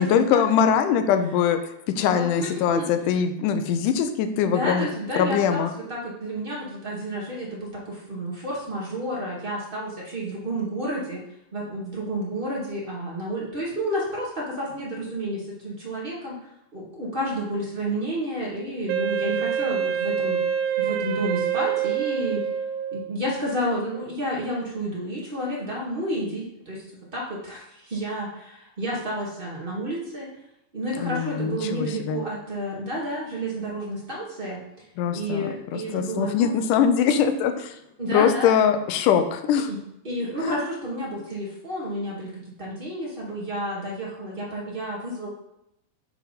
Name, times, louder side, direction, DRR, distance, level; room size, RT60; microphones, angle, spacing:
voice 1, 0.0-1.6 1.9-4.9 5.2-5.7 31.0-32.2 35.0-37.8 38.1-39.7 40.4-40.6, left 8 dB, 80° left, 8 dB, 2.0 m, -22 dB
voice 2, 2.0-2.9 4.4-11.2 11.5-16.4 16.7-20.4 20.8-22.5 22.9-30.3 30.7-34.6 35.1-36.5 38.0-38.5 39.7-39.8 40.0-45.3, right 1 dB, 40° right, -5 dB, 0.7 m, -30 dB
Wind instrument woodwind instrument, 18.9-23.1, right 8 dB, 80° right, 1.8 m, -26 dB
7.1 x 4.5 x 5.4 m, 0.82 s
omnidirectional pair, 4.0 m